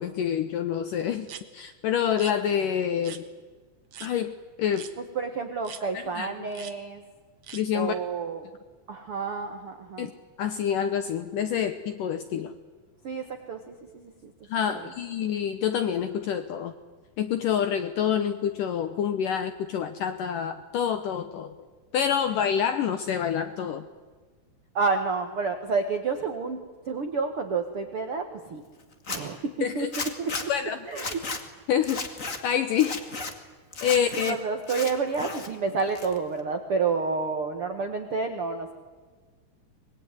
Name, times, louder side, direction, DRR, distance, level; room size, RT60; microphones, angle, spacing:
voice 1, 0.0-3.3 4.0-4.9 6.2-6.3 7.5-7.9 10.0-10.1 10.4-12.5 14.5-16.7 17.2-21.5 21.9-23.8 29.6-29.9 30.5-30.8 31.7-32.2 32.4-33.0 33.8-34.4, left 8 dB, 75° left, 10 dB, 2.0 m, -27 dB
sound 1, 1.3-1.4 2.1-2.4 3.0-3.2 3.9-4.1 4.7-4.9 5.6-5.8 6.5-6.7 7.4-7.6, right 9 dB, 80° right, 1.3 m, -42 dB
voice 2, 5.1-7.0 7.7-8.5 8.9-10.1 13.0-14.3 14.7-14.9 24.7-28.6 29.1-30.5 30.9-31.2 34.3-38.7, right 4 dB, 65° right, 6 dB, 1.4 m, -30 dB
Zipper (clothing), 28.9-29.2 29.9-30.4 30.9-31.4 31.8-32.4 32.7-33.3 33.7-34.3 34.6-35.5 35.8-36.4, left 4 dB, 40° left, 1.1 m, -34 dB
24.5 x 21.0 x 9.7 m, 1.4 s
omnidirectional pair, 5.0 m